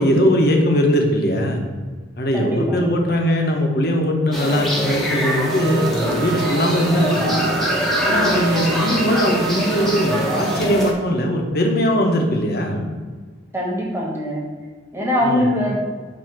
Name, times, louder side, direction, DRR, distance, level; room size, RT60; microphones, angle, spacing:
voice 1, 0.0-1.6 2.2-7.4 8.0-12.9 15.2-15.5, equal, 55° left, 2 dB, 1.0 m, -20 dB
voice 2, 2.3-2.8 8.0-8.4 13.5-14.4 14.9-15.8, left 1 dB, 15° right, -3 dB, 1.6 m, -22 dB
sound 1, 4.3-10.9, equal, ahead, 1.0 m, -23 dB
sound 2, 5.4-10.6, right 7 dB, 80° right, 0.3 m, -29 dB
7.5 x 2.9 x 5.9 m, 1.5 s
head